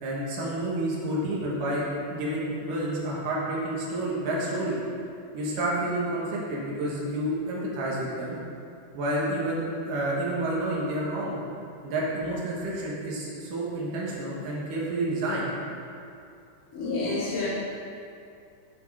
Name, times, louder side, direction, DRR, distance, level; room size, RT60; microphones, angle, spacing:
voice 1, 0.0-4.8 5.3-8.4 8.9-11.4 11.8-15.5, right 1 dB, 85° right, -5 dB, 3.0 m, -29 dB
voice 2, 16.7-17.5, left 3 dB, 30° left, -9 dB, 2.1 m, -28 dB
11.0 x 3.8 x 4.8 m, 2.5 s
omnidirectional pair, 3.7 m